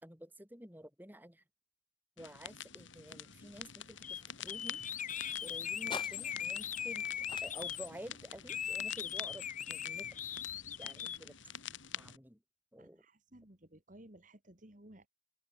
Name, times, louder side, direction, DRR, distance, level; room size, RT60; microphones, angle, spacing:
voice 1, 0.0-1.4 2.2-4.8 5.4-7.1 7.4-10.2 10.8-11.6 12.0-12.4 12.7-13.0, equal, 10° right, 4.4 m, -51 dB
sound 1, 2.2-12.2, left 9 dB, 75° left, 2.6 m, -48 dB
sound 2, 3.0-11.2, left 4 dB, 25° left, 2.2 m, -53 dB
sound 3, 4.0-4.2 4.5-7.9 8.5-11.2, left 9 dB, 40° left, 1.6 m, -39 dB
voice 2, 12.8-15.1, right 1 dB, 40° right, 2.5 m, -57 dB
open air
head